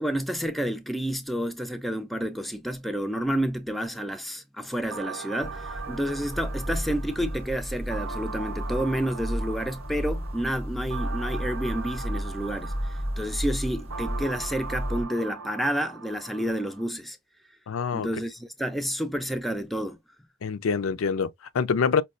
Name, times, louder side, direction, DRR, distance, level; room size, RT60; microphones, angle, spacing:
voice 1, 0.0-17.2 17.9-20.0, equal, ahead, 0.3 m, -30 dB
sound 1, 4.9-16.9, right 5 dB, 85° right, 0.6 m, -40 dB
sound 2, 5.4-15.0, equal, 30° right, 0.7 m, -33 dB
voice 2, 17.7-18.1 20.4-22.0, left 5 dB, 80° left, 0.4 m, -25 dB
5.3 x 2.2 x 2.4 m
head